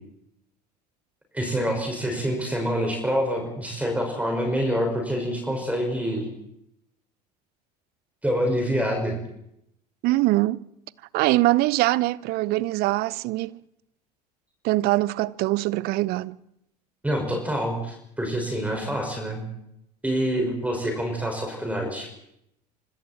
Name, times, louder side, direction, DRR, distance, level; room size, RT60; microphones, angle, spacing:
voice 1, 1.3-6.3 8.2-9.2 17.0-19.4 20.0-22.1, equal, 5° right, 5.9 m, -26 dB
voice 2, 10.0-10.6 11.1-13.6 14.6-16.4, right 18 dB, 50° right, 0.7 m, -23 dB
26.5 x 25.5 x 4.5 m
figure-of-eight pair, 65°, 21 cm